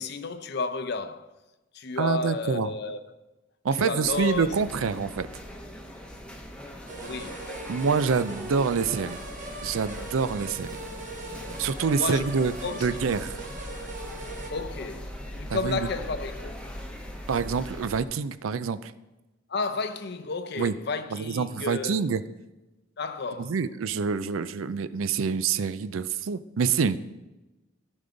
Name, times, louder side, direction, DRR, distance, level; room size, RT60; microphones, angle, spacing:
voice 1, 0.0-1.3 1.7-3.1 3.8-4.6 7.0-7.5 12.0-12.9 14.5-16.6 19.5-22.0 23.0-23.6, left 4 dB, 55° left, 0.6 m, -32 dB
voice 2, 2.0-2.7 3.6-5.3 7.7-9.2 9.6-10.7 11.6-12.5 12.8-13.4 15.5-15.9 17.3-18.9 20.6-20.7 21.1-22.2 23.4-27.0, right 5 dB, 90° right, 0.5 m, -26 dB
sound 1, 4.0-18.0, equal, 5° left, 0.8 m, -40 dB
sound 2, 6.9-14.5, right 2 dB, 40° right, 1.2 m, -40 dB
15.0 x 5.4 x 3.9 m
head